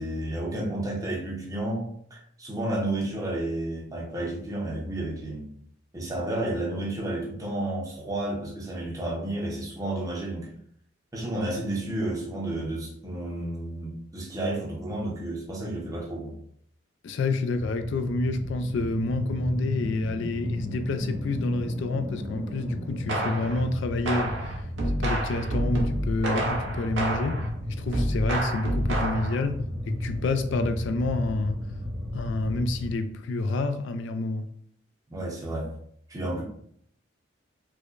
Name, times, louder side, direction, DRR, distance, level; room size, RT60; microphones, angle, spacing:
voice 1, 0.0-5.5 5.9-10.6 11.1-16.3 35.1-35.7 36.1-36.4, right 1 dB, 15° right, 0.7 m, -31 dB
voice 2, 17.0-24.5 25.0-27.4 27.8-29.6 29.9-31.6 32.1-34.5, left 2 dB, 60° left, 0.3 m, -28 dB
sound 1, 17.5-33.0, left 1 dB, 80° right, 1.0 m, -34 dB
sound 2, 23.1-23.6 24.1-27.5 27.9-29.4, right 1 dB, 65° right, 0.8 m, -29 dB
4.7 x 2.1 x 2.5 m
head